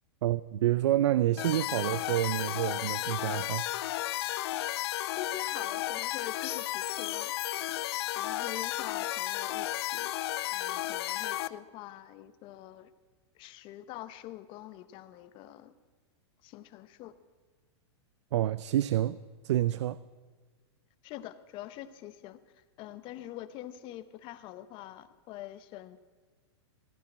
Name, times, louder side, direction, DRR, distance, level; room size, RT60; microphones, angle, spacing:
voice 1, 0.2-3.6 18.3-19.2 19.4-20.0, right 13 dB, 80° right, 0.4 m, -28 dB
sound 1, 1.4-11.5, left 15 dB, 65° left, 0.5 m, -33 dB
voice 2, 5.1-7.3 8.2-10.1 10.5-12.9 13.3-15.7 16.4-17.1 21.0-22.4 22.8-26.0, left 13 dB, 35° left, 0.8 m, -45 dB
15.5 x 10.0 x 6.1 m
hypercardioid pair, 140°, 15 cm